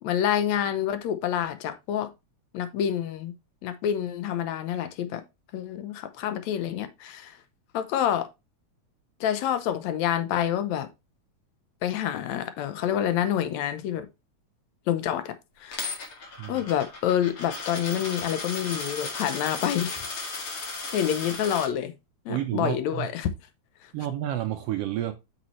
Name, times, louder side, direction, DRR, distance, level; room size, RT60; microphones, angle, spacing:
voice 1, 0.0-2.1 2.5-3.3 3.6-5.2 5.5-7.4 7.7-8.3 9.2-10.9 11.8-14.1 14.9-15.9 16.5-20.0 20.6-21.9 22.3-23.3, left 10 dB, 75° left, 2.0 m, -27 dB
Coin (dropping), 15.7-21.7, left 3 dB, 50° left, 2.6 m, -35 dB
voice 2, 22.3-23.1 23.9-25.1, right 13 dB, 75° right, 1.5 m, -30 dB
8.3 x 5.9 x 3.1 m
omnidirectional pair, 3.3 m